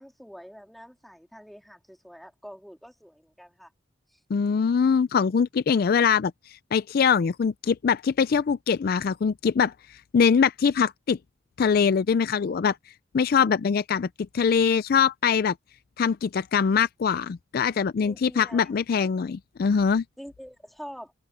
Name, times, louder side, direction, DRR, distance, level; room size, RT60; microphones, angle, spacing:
voice 1, 0.0-3.7 4.1-4.2 18.0-18.7 20.2-21.1, equal, ahead, 3.2 m, -45 dB
voice 2, 4.3-6.3 6.7-9.7 10.1-11.2 11.6-12.8 13.1-14.1 14.3-15.5 16.0-20.0, left 6 dB, 55° left, 0.4 m, -23 dB
head